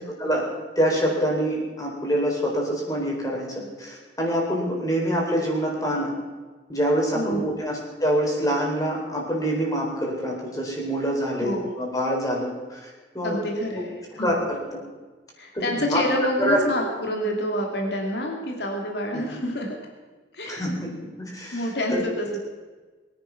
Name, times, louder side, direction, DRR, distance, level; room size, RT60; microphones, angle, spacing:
voice 1, 0.8-6.1 6.7-13.4 14.1-14.6 15.5-16.0 16.4-16.7 19.1-19.4 20.5-20.9 21.2-22.0, equal, 20° left, -1 dB, 4.2 m, -26 dB
voice 2, 7.1-7.5 11.3-11.7 13.2-14.4 15.4-19.8 20.3-20.7 21.5-22.4, equal, 65° left, 1 dB, 2.7 m, -28 dB
22.5 x 10.5 x 6.0 m, 1.3 s
head